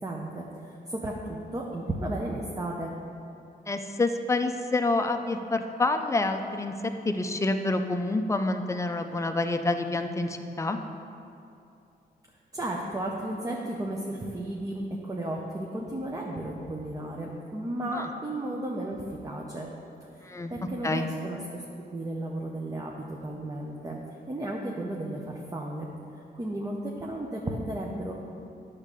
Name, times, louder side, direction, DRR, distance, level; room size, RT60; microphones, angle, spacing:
voice 1, 0.0-2.9 12.5-19.7 20.1-21.6 21.9-24.0 24.3-25.9 26.3-28.1, right 1 dB, 20° right, -1 dB, 0.7 m, -34 dB
voice 2, 3.7-6.7 7.0-10.8 17.9-18.1 20.2-20.5 20.8-21.1, left 2 dB, 20° left, 6 dB, 0.5 m, -27 dB
10.0 x 3.7 x 6.6 m, 2.6 s
wide cardioid pair, 115°, 16 cm